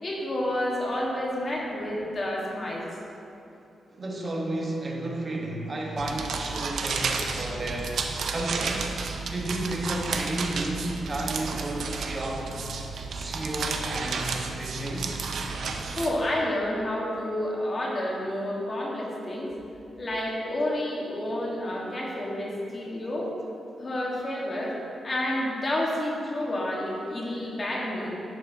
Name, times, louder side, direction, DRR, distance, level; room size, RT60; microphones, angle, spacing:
voice 1, 0.0-2.9 16.0-19.5 20.0-23.3 23.8-24.8 25.0-28.1, left 1 dB, 30° left, -3 dB, 1.3 m, -29 dB
voice 2, 3.9-8.9 9.2-12.5 13.1-15.1, right 1 dB, 30° right, -1 dB, 1.1 m, -32 dB
sound 1, 6.0-16.1, right 4 dB, 65° right, 0.6 m, -32 dB
11.5 x 6.5 x 2.7 m, 2.8 s
wide cardioid pair, 160°, 0 cm